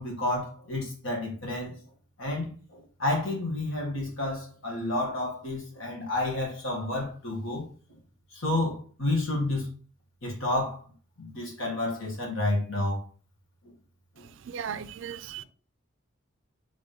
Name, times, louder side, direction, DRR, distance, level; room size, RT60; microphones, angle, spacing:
voice 1, 0.0-1.7 2.2-7.6 8.3-9.7 10.2-10.8 11.2-13.0 14.2-14.3, left 2 dB, 70° left, 1.7 m, -30 dB
voice 2, 14.2-15.4, right 8 dB, 65° right, 0.3 m, -37 dB
4.1 x 3.7 x 3.4 m
head